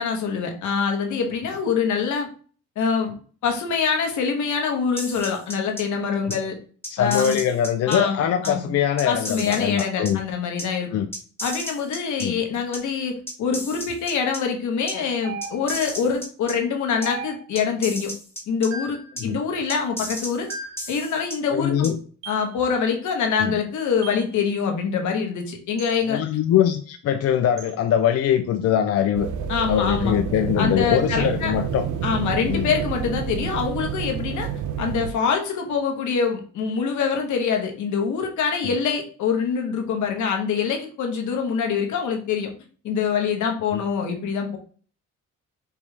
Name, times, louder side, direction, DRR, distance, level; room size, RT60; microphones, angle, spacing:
voice 1, 0.0-2.3 2.8-3.2 3.4-6.6 7.0-7.3 7.9-8.7 9.0-10.9 11.4-18.1 18.5-20.5 20.9-21.9 22.3-26.2 29.5-30.1 30.6-31.5 32.0-34.5 34.8-42.5 42.8-44.6, left 6 dB, 75° left, 3 dB, 1.0 m, -25 dB
sound 1, 5.0-5.8 6.3-6.4 6.8-8.0 8.4-8.5 9.0-10.1 10.6-10.7 11.1-12.2 12.7-12.8 13.3-14.4 14.9-15.0 15.4-16.5 17.0-17.1 17.5-18.7 19.2-19.3 19.7-21.4 21.8-21.9, left 1 dB, 10° left, 1.3 m, -33 dB
voice 2, 6.9-10.2 10.9-11.1 12.2-12.4 19.2-19.4 21.5-22.0 23.4-23.6 26.1-29.3 29.7-31.8 32.5-32.7 43.7-43.8, left 9 dB, 55° left, 7 dB, 0.4 m, -22 dB
sound 2, 15.2-15.9 17.0-17.7 18.7-19.1 20.5-20.9 22.2-22.5 24.0-24.3 25.8-26.0 27.6-27.8, right 4 dB, 65° right, 1.3 m, -36 dB
sound 3, 29.1-35.1, right 8 dB, 80° right, 0.5 m, -29 dB
5.2 x 2.3 x 3.2 m, 0.42 s
cardioid pair, 90°, 30 cm